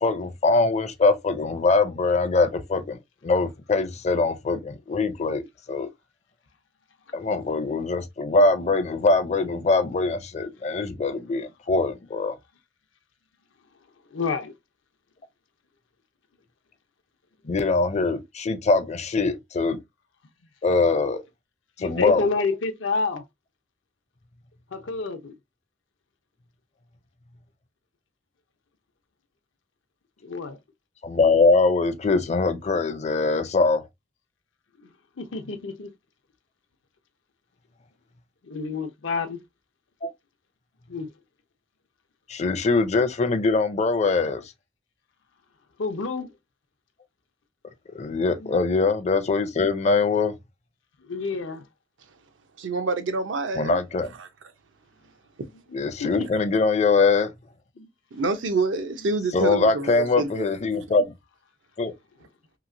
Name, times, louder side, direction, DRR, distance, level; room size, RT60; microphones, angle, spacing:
voice 1, 0.0-5.4 5.7-5.9 7.1-12.4 17.4-19.8 20.6-21.2 21.8-22.2 31.0-33.8 40.0-40.1 42.3-44.4 47.9-50.3 53.6-54.1 55.7-57.3 59.3-61.1 61.8-61.9, left 3 dB, 35° left, 0.5 m, -22 dB
voice 2, 14.1-14.5 21.8-23.2 24.7-25.3 30.2-30.6 34.8-34.9 35.2-35.9 38.4-39.4 40.9-41.1 45.8-46.3 48.4-48.5 51.0-51.7 56.0-56.3 57.8-57.9 59.0-59.1, left 4 dB, 85° left, 0.7 m, -29 dB
voice 3, 52.6-53.8 54.2-54.3 58.1-60.5, right 3 dB, 80° right, 0.6 m, -27 dB
3.0 x 2.8 x 2.5 m
head